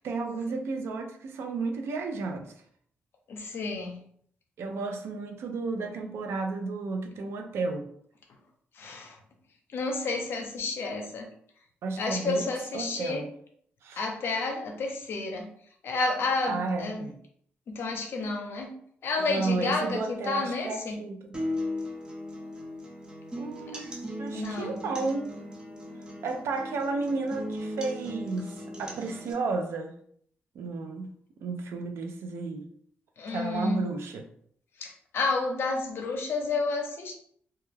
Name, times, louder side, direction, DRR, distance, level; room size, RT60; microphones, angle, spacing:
voice 1, 0.0-2.5 4.6-7.9 11.8-13.3 13.8-14.0 16.5-17.2 19.2-21.3 23.4-23.9 24.2-25.3 26.2-29.9 30.5-32.7 33.3-34.3, right 3 dB, 75° right, 0.4 m, -32 dB
voice 2, 3.3-4.0 8.7-9.2 9.7-11.3 12.0-13.2 14.0-15.5 15.8-17.0 17.7-18.7 19.0-21.0 24.3-24.8 33.2-33.8 34.8-37.1, left 3 dB, 65° left, 0.6 m, -30 dB
sound 1, 21.3-29.3, left 1 dB, 20° right, 0.5 m, -37 dB
2.2 x 2.1 x 3.2 m
cardioid pair, 115°, 4 cm